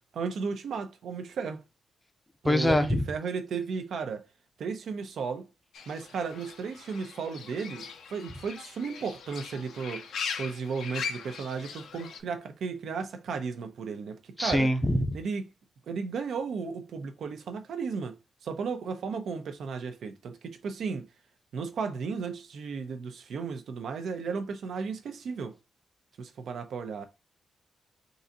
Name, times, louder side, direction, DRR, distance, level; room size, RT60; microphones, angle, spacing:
voice 1, 0.1-1.6 2.4-4.3 4.6-5.5 5.9-14.7 15.1-15.4 15.9-21.1 21.5-25.6 26.2-27.0, right 5 dB, 75° right, 0.7 m, -34 dB
voice 2, 2.4-3.0 14.4-15.1, left 1 dB, 10° left, 0.6 m, -24 dB
Fowl / Bird, 5.7-12.2, left 6 dB, 90° left, 0.7 m, -40 dB
3.9 x 2.6 x 3.9 m
wide cardioid pair, 165°, 0 cm